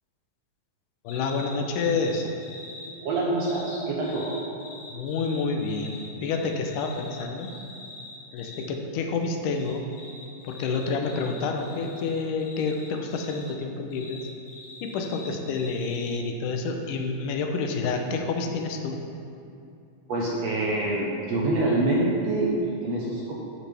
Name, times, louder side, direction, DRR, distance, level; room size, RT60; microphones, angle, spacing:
voice 1, 1.0-2.3 4.9-7.5 8.3-9.8 10.4-14.3 14.8-19.0, left 4 dB, 75° left, 3 dB, 2.2 m, -28 dB
sound 1, 1.1-2.9 3.4-8.7 9.5-13.5 13.9-16.2, left 2 dB, 55° left, 2.1 m, -44 dB
voice 2, 3.0-4.4 20.1-22.5 22.8-23.3, right 2 dB, 65° right, -4 dB, 1.7 m, -26 dB
12.0 x 8.7 x 3.4 m, 2.6 s
omnidirectional pair, 3.9 m